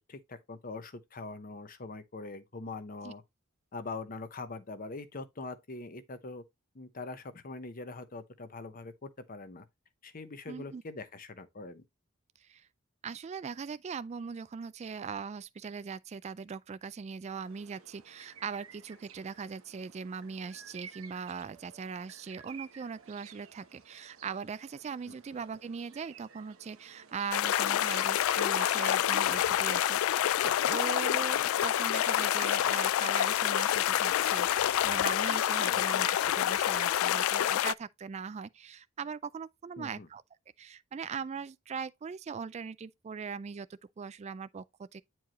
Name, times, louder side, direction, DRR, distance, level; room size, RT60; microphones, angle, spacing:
voice 1, 0.0-3.2 3.7-6.4 6.7-9.7 10.0-11.8 25.1-25.2 35.6-36.0 39.8-40.1, left 3 dB, 45° left, 0.8 m, -43 dB
voice 2, 10.5-10.8 12.4-12.7 13.0-40.2 40.6-45.0, right 6 dB, 35° right, 0.3 m, -40 dB
sound 1, 17.4-32.8, right 6 dB, 90° right, 1.0 m, -54 dB
sound 2, 27.3-37.7, left 11 dB, 90° left, 0.3 m, -27 dB
9.2 x 4.6 x 3.0 m
head